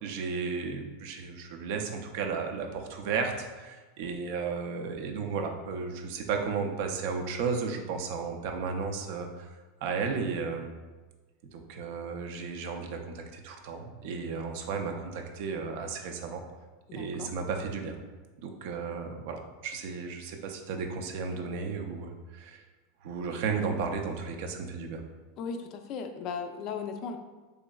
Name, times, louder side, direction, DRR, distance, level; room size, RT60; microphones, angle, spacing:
voice 1, 0.0-9.5 9.8-10.7 11.5-16.4 16.9-18.0 18.4-22.6 23.0-25.0, right 5 dB, 65° right, 4 dB, 0.4 m, -34 dB
voice 2, 16.9-17.3 25.4-27.2, left 5 dB, 50° left, 6 dB, 0.4 m, -37 dB
3.7 x 3.1 x 2.3 m, 1.2 s
hypercardioid pair, 110°, 0 cm